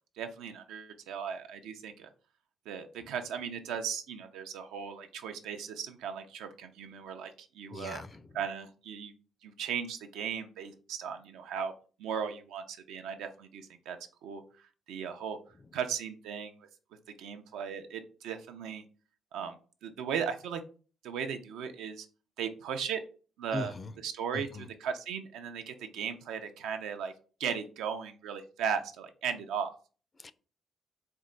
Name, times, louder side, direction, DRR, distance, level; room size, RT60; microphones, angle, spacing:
voice 1, 0.2-2.1 2.7-8.0 8.3-9.1 9.4-11.7 12.0-14.0 14.2-14.4 14.9-15.4 15.7-16.5 17.2-18.8 19.3-20.6 21.0-22.1 22.4-23.0 23.4-23.7 24.0-27.1 27.4-29.7, right 7 dB, 90° right, 0.5 m, -37 dB
voice 2, 7.7-8.3 23.5-23.9 24.3-24.7 30.2-30.3, left 3 dB, 35° left, 0.3 m, -39 dB
4.4 x 2.2 x 3.8 m
cardioid pair, 90°, 0 cm